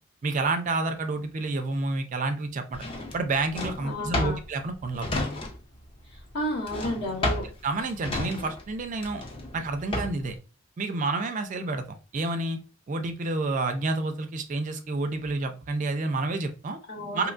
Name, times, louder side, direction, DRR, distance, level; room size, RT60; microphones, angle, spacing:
voice 1, 0.2-2.9 3.1-5.1 7.6-9.2 9.5-10.4 10.8-12.6 12.9-16.8 17.1-17.3, right 3 dB, 35° right, 7 dB, 0.3 m, -29 dB
Drawer open or close, 2.7-5.8 6.1-10.4, left 1 dB, 25° left, 0.4 m, -32 dB
voice 2, 3.8-4.4 6.3-7.4 16.9-17.3, left 1 dB, 60° left, -1 dB, 1.0 m, -31 dB
2.9 x 2.2 x 2.4 m, 0.34 s
head